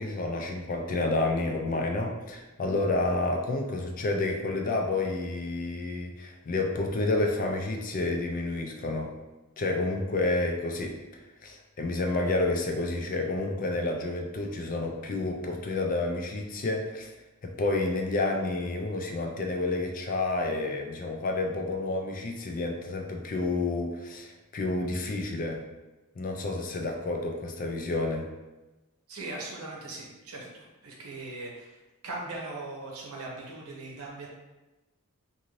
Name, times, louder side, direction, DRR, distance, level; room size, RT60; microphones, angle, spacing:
voice 1, 0.0-9.1 9.6-11.0 11.4-17.1 17.4-25.6 26.2-28.3, left 2 dB, 40° left, 2 dB, 0.4 m, -30 dB
voice 2, 29.1-31.7 32.0-34.3, right 2 dB, 70° right, -3 dB, 0.8 m, -39 dB
2.6 x 2.5 x 3.0 m, 1.1 s
head